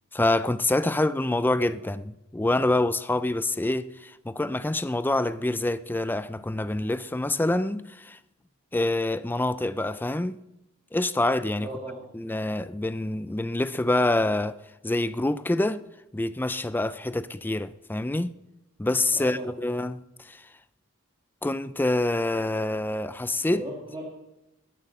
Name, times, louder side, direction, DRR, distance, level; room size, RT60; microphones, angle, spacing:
voice 1, 0.1-8.2 8.7-10.4 10.9-11.7 12.1-14.6 14.8-15.8 16.1-18.3 18.8-20.4 21.4-23.6, left 2 dB, 10° left, 0.4 m, -26 dB
voice 2, 11.6-12.1 19.1-19.6 23.5-24.0, right 1 dB, 25° right, 2.6 m, -37 dB
20.5 x 7.5 x 6.6 m
head